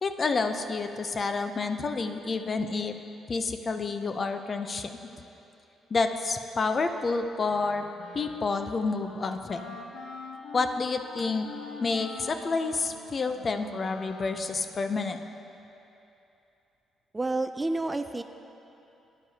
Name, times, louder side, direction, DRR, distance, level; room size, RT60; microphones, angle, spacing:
voice 1, 0.0-3.0 3.3-5.0 5.9-7.8 8.1-9.8 10.5-11.5 11.8-15.2, left 4 dB, 40° left, 8 dB, 0.5 m, -29 dB
Wind instrument woodwind instrument, 7.5-14.8, left 4 dB, 70° left, 0.8 m, -45 dB
voice 2, 17.1-18.2, right 2 dB, 20° right, 9 dB, 0.3 m, -29 dB
12.0 x 10.0 x 2.8 m, 2.9 s
cardioid pair, 90°, 0 cm